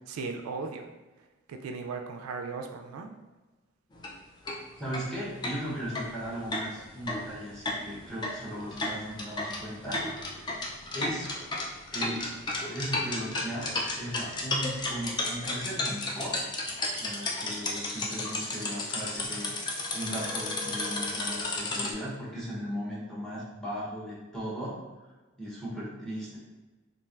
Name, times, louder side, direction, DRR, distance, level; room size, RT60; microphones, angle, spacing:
voice 1, 0.1-0.9 1.5-3.1, right 4 dB, 85° right, 4 dB, 0.3 m, -37 dB
sound 1, 3.9-4.1 4.5-4.6 4.9-5.0 5.4-21.9, left 2 dB, 20° left, 0.3 m, -33 dB
voice 2, 4.8-10.4 10.9-11.3 11.9-12.3 12.7-16.3 17.0-19.5 19.9-24.7 25.4-26.4, equal, 5° left, -7 dB, 0.8 m, -37 dB
3.1 x 2.5 x 2.3 m, 1.2 s
head